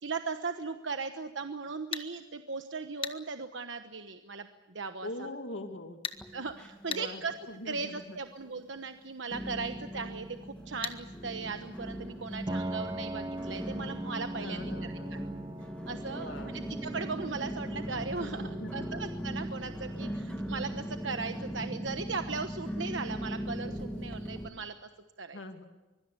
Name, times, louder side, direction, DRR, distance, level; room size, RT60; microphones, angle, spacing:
voice 1, 0.0-5.1 6.3-7.3 7.6-15.2 15.9-24.7 25.2-25.4, right 4 dB, 80° right, 7 dB, 1.2 m, -38 dB
sound 1, 1.9-2.1 3.0-3.2 6.0-6.2 6.9-7.1 10.8-11.0, left 6 dB, 30° left, 1.2 m, -35 dB
voice 2, 5.0-6.0 6.9-7.2 7.5-8.2 14.4-15.3 16.1-16.6 18.2-18.9 25.3-25.6, left 2 dB, 90° left, 5 dB, 2.5 m, -42 dB
sound 2, 6.1-7.1 7.3-8.0 8.5-8.6 9.3-24.5, equal, 5° left, 2.2 m, -39 dB
Piano, 12.5-22.0, right 1 dB, 20° right, 0.9 m, -43 dB
25.0 x 23.5 x 6.9 m, 1.1 s
head